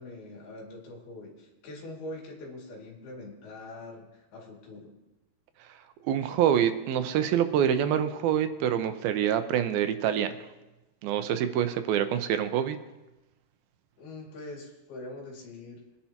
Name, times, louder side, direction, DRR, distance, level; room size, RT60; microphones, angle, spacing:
voice 1, 0.0-4.9 14.0-15.8, left 2 dB, 80° left, -1 dB, 4.3 m, -43 dB
voice 2, 6.1-10.3 11.0-12.8, right 9 dB, 80° right, 9 dB, 2.5 m, -26 dB
22.5 x 10.0 x 2.9 m, 1.0 s
omnidirectional pair, 4.4 m